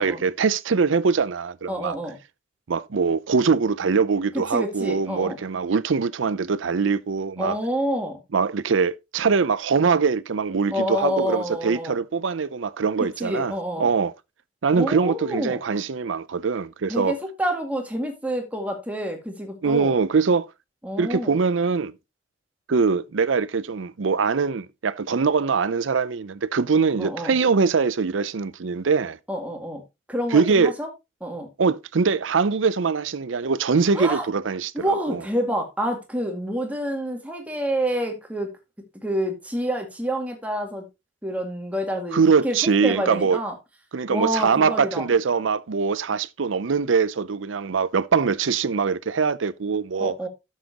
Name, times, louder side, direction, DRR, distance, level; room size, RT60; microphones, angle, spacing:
voice 1, 0.0-2.0 2.7-7.6 8.3-14.1 14.6-17.2 19.6-20.5 21.0-21.9 22.7-29.2 30.3-30.7 31.6-35.2 42.1-43.4 43.9-50.1, right 5 dB, 80° right, 0.6 m, -22 dB
voice 2, 1.7-2.2 4.5-5.4 7.4-8.2 10.7-12.0 13.2-13.9 14.7-15.6 16.9-19.9 20.8-21.4 27.0-27.3 29.3-29.8 30.1-30.9 31.2-31.5 33.9-34.3 34.7-38.5 39.0-40.8 41.2-43.5 44.1-45.0 50.0-50.3, equal, 5° right, 2.2 m, -28 dB
11.5 x 7.5 x 2.9 m
head